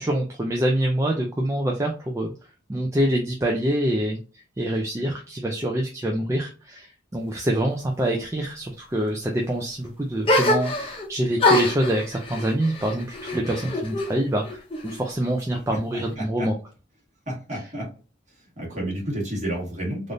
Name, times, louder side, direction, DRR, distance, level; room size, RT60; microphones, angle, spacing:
voice 1, 0.0-2.3 2.7-4.2 4.6-16.5, right 1 dB, 15° right, 0 dB, 0.3 m, -25 dB
sound 1, 10.2-11.1 11.4-14.1 14.4-15.3, left 2 dB, 30° left, 0.6 m, -24 dB
voice 2, 15.9-16.5 17.3-17.9 18.3-20.1, right 1 dB, 40° right, -3 dB, 1.5 m, -31 dB
3.4 x 2.5 x 2.5 m, 0.35 s
head